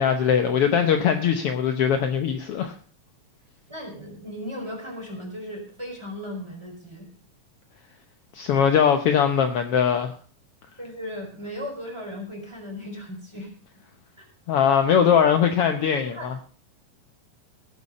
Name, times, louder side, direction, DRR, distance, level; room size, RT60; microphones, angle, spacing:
voice 1, 0.0-2.7 8.3-10.1 14.5-16.3, left 8 dB, 75° left, 7 dB, 1.3 m, -21 dB
voice 2, 3.7-7.1 10.8-13.5 14.2-14.3 15.9-16.4, equal, 10° right, -1 dB, 4.6 m, -36 dB
17.0 x 8.4 x 5.5 m, 0.42 s
omnidirectional pair, 3.8 m